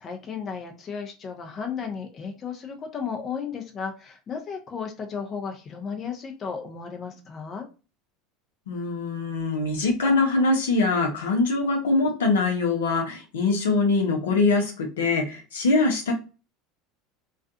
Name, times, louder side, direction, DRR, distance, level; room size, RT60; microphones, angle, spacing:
voice 1, 0.0-7.7, left 6 dB, 40° left, 3 dB, 0.6 m, -34 dB
voice 2, 8.7-16.1, left 3 dB, 80° left, 1 dB, 0.7 m, -23 dB
2.4 x 2.3 x 2.5 m, 0.33 s
hypercardioid pair, 80°, 0 cm